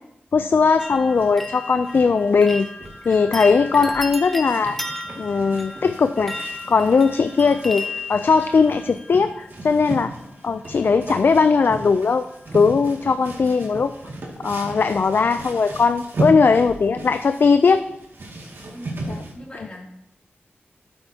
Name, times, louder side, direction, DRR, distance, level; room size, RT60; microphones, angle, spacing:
voice 1, 0.3-2.7 3.1-4.8 5.2-6.3 6.7-9.3 9.6-10.1 10.4-12.3 12.5-13.9 14.4-17.8 19.1-19.2, left 5 dB, 60° left, 9 dB, 0.4 m, -18 dB
sound 1, 0.6-19.3, right 2 dB, 65° right, 2.2 m, -36 dB
sound 2, 0.8-9.7 10.7-11.2 11.4-12.0 12.3-12.4, left 2 dB, 5° left, 0.8 m, -35 dB
voice 2, 18.7-19.9, equal, 30° left, -6 dB, 3.1 m, -41 dB
12.5 x 7.8 x 2.8 m, 0.84 s
wide cardioid pair, 100°, 4 cm